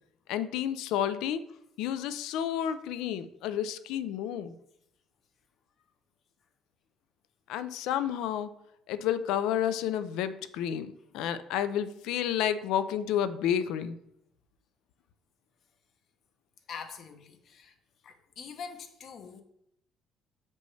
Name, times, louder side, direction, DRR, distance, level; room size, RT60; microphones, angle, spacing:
voice 1, 0.3-1.4 1.8-4.5 7.5-8.5 8.9-14.0, left 10 dB, 85° left, 13 dB, 0.4 m, -30 dB
voice 2, 16.7-17.7 18.0-19.4, left 6 dB, 55° left, 7 dB, 0.8 m, -44 dB
6.4 x 5.2 x 3.2 m, 0.78 s
cardioid pair, 105°, 0 cm